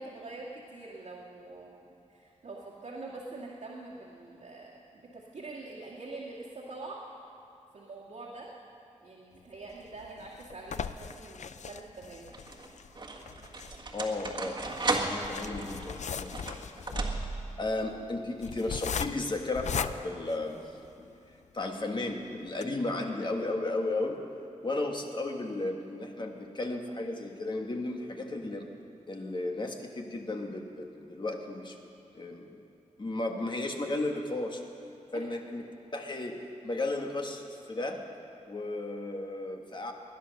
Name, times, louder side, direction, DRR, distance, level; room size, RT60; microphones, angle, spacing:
voice 1, 0.0-7.0 7.7-8.5 9.0-12.4 23.1-23.2 35.1-35.2, right 3 dB, 80° right, -7 dB, 2.0 m, -45 dB
sound 1, 9.7-21.1 21.6-21.7 22.0-22.1 22.5-22.6, left 7 dB, 70° left, 0.5 m, -39 dB
sound 2, 10.8-11.3 12.1-17.6, right 3 dB, 40° right, 1.6 m, -35 dB
voice 2, 13.9-16.7 17.6-20.6 21.0-21.1 21.5-24.2 24.6-28.7 29.1-31.7 32.1-32.6 33.0-34.6 35.1-35.6 35.9-36.4 36.6-37.4 37.7-38.0 38.5-39.9, left 2 dB, 40° left, 3 dB, 1.5 m, -34 dB
20.5 x 11.0 x 6.5 m, 2.7 s
wide cardioid pair, 115°, 12 cm